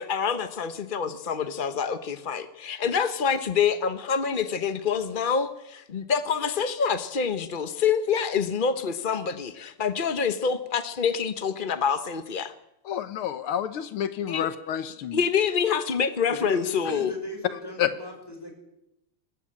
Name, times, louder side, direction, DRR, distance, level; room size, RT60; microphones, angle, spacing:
voice 1, 0.0-12.5 14.3-14.5 15.1-17.1, left 6 dB, 45° left, 11 dB, 0.6 m, -26 dB
voice 2, 12.9-15.2 17.8-17.9, left 10 dB, 80° left, 12 dB, 2.0 m, -29 dB
voice 3, 16.3-18.5, equal, 10° left, 3 dB, 5.7 m, -37 dB
21.5 x 19.0 x 8.7 m, 0.84 s
omnidirectional pair, 2.3 m